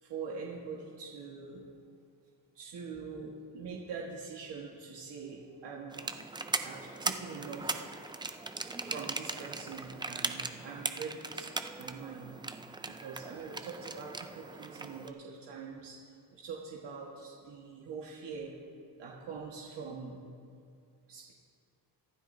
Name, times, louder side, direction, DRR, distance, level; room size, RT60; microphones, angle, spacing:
voice 1, 0.0-1.6 2.5-6.1 6.6-7.9 8.7-12.4 12.8-16.0 16.3-18.5 19.0-20.2 21.1-21.3, right 5 dB, 70° right, -4 dB, 1.6 m, -43 dB
sound 1, 5.9-15.1, right 3 dB, 10° right, 0.4 m, -39 dB
24.0 x 12.0 x 2.7 m, 2.3 s
cardioid pair, 120°, 43 cm